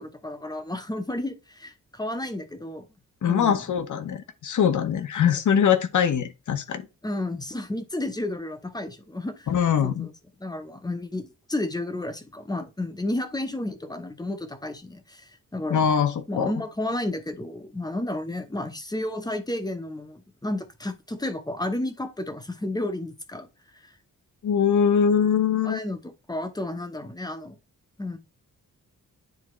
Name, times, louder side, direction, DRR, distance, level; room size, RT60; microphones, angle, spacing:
voice 1, 0.0-2.9 3.2-3.6 7.0-9.5 9.8-10.1 10.4-15.9 16.3-23.5 23.7-23.9 25.6-26.0 26.3-27.6 28.0-28.2, left 1 dB, 10° left, 0.9 m, -32 dB
voice 2, 3.2-6.8 9.5-10.1 15.7-16.6 24.4-25.8, left 7 dB, 60° left, 0.9 m, -22 dB
9.6 x 3.6 x 3.1 m
wide cardioid pair, 120°, 33 cm